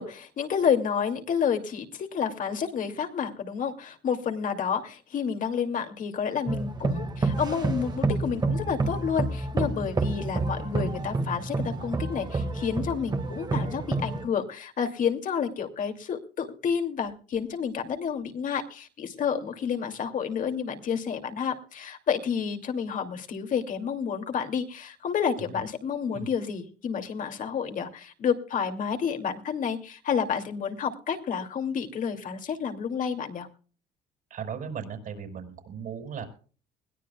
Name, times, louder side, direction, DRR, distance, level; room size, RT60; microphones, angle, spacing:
voice 1, 0.0-33.5, left 7 dB, 50° left, 5 dB, 2.6 m, -30 dB
sound 1, 6.5-14.3, right 3 dB, 25° right, 1.9 m, -29 dB
voice 2, 34.3-36.3, right 7 dB, 55° right, 4 dB, 5.4 m, -37 dB
21.5 x 17.0 x 2.3 m, 0.40 s
cardioid pair, 110°, 17 cm